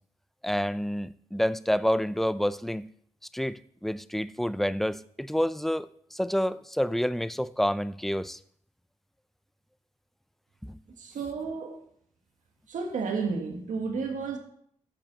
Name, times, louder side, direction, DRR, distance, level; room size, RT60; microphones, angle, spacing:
voice 1, 0.4-2.9 3.3-8.4 10.6-10.8, equal, ahead, 0.4 m, -28 dB
voice 2, 11.0-11.8 12.7-14.4, right 4 dB, 85° right, 1.7 m, -32 dB
11.0 x 7.8 x 4.0 m
cardioid pair, 80°, 13 cm